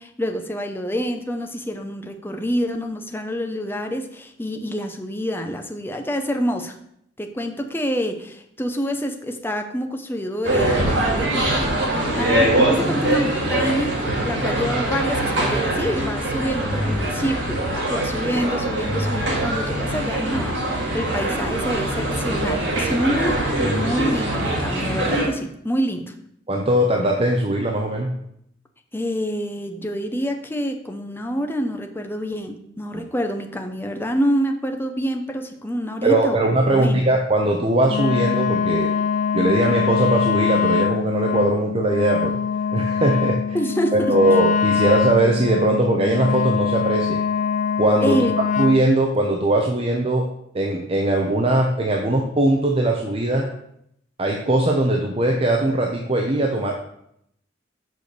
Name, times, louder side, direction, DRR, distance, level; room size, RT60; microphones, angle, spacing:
voice 1, 0.0-6.8 7.2-26.1 28.9-36.4 36.7-37.1 43.5-44.2 48.0-48.3, equal, 10° left, 5 dB, 0.7 m, -27 dB
sound 1, 10.4-25.2, right 1 dB, 65° right, 3.0 m, -23 dB
voice 2, 26.5-28.1 36.0-38.9 39.3-42.4 42.7-43.6 43.9-47.2 47.8-48.2 48.6-50.3 50.5-53.5 54.2-56.7, right 1 dB, 30° right, 0 dB, 0.8 m, -20 dB
Wind instrument woodwind instrument, 37.9-48.9, left 6 dB, 40° left, 0.4 m, -23 dB
6.6 x 5.1 x 6.7 m, 0.74 s
head